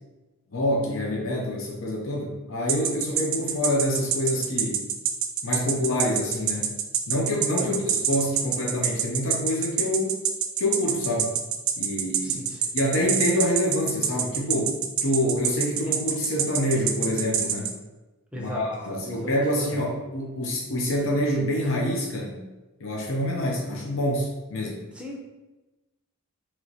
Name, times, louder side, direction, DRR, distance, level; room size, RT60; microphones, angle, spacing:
voice 1, 0.5-4.9 5.4-6.7 7.1-10.2 10.6-11.3 11.8-12.4 12.7-17.7 18.3-22.4 22.8-24.8, left 1 dB, 65° left, -2 dB, 0.8 m, -26 dB
sound 1, 2.7-17.7, right 9 dB, 65° right, 0.4 m, -25 dB
voice 2, 7.6-7.9 12.2-12.6 18.3-19.6 25.0-25.2, equal, 5° right, -2 dB, 0.6 m, -37 dB
3.1 x 3.0 x 4.0 m, 1.1 s
head